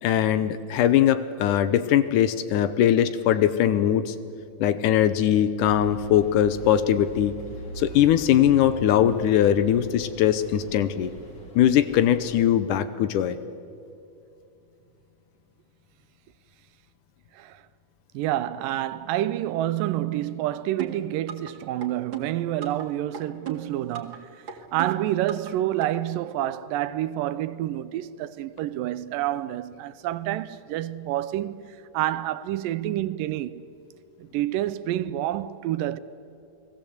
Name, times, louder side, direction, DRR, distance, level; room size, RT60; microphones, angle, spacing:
voice 1, 0.0-4.2 4.6-7.4 7.8-11.1 11.6-13.4, left 10 dB, 75° left, 2.1 m, -21 dB
sound 1, 5.6-12.4, right 1 dB, 30° left, 3.0 m, -42 dB
voice 2, 18.1-33.7 34.2-36.0, right 13 dB, 80° right, 2.3 m, -28 dB
sound 2, 20.8-21.5 21.8-22.8 23.1-24.2 24.5-25.5 25.8-25.9, right 8 dB, 40° right, 2.3 m, -36 dB
29.5 x 20.0 x 8.0 m
omnidirectional pair, 4.0 m